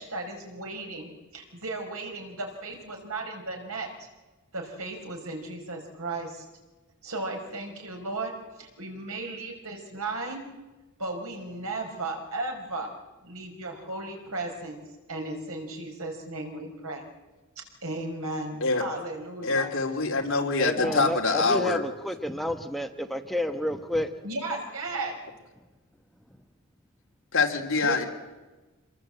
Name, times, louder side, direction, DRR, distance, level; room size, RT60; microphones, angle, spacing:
voice 1, 0.0-4.1 4.5-6.5 7.0-8.3 8.6-10.5 11.0-12.9 13.2-14.8 15.1-17.0 17.8-19.7 20.8-21.0 24.2-25.1 27.8-28.1, right 2 dB, 85° right, 5.4 m, -35 dB
voice 2, 19.4-21.8 27.3-28.0, left 3 dB, 60° left, 3.5 m, -25 dB
voice 3, 20.6-24.1, equal, ahead, 1.2 m, -30 dB
27.0 x 22.0 x 8.0 m
head